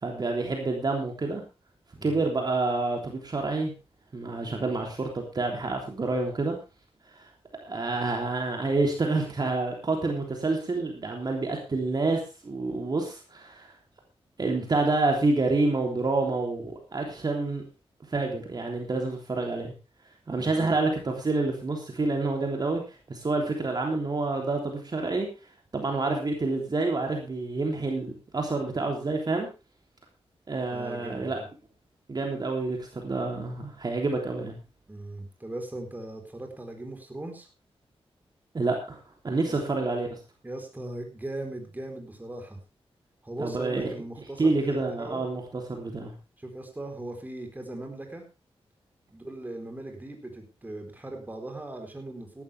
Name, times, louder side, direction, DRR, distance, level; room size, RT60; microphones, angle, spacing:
voice 1, 0.0-1.4 2.0-3.7 4.1-6.5 7.1-7.2 7.6-13.7 14.4-17.6 18.1-19.7 20.3-22.8 23.1-25.3 25.7-29.5 30.5-31.4 32.1-34.6 38.5-39.0 39.2-40.2 43.4-43.9 44.4-46.1, right 3 dB, 40° right, 1 dB, 3.3 m, -28 dB
voice 2, 20.4-20.7 30.7-31.5 34.9-37.5 39.5-39.6 40.4-42.6 43.2-45.2 46.4-48.2 49.1-52.4, right 2 dB, 15° right, 3 dB, 4.2 m, -39 dB
16.5 x 12.5 x 3.5 m, 0.29 s
wide cardioid pair, 115°, 10 cm